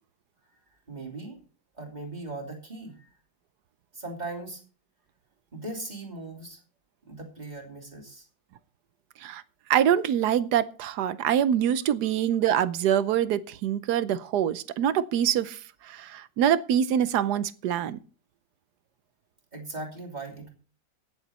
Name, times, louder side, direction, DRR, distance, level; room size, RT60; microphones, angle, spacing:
voice 1, 0.9-1.4 1.8-3.1 3.9-4.6 5.5-6.6 7.1-8.3 19.5-20.5, right 2 dB, 20° right, 3.0 m, -39 dB
voice 2, 9.7-18.0, right 10 dB, 70° right, 1.2 m, -25 dB
17.0 x 7.2 x 4.2 m
omnidirectional pair, 2.0 m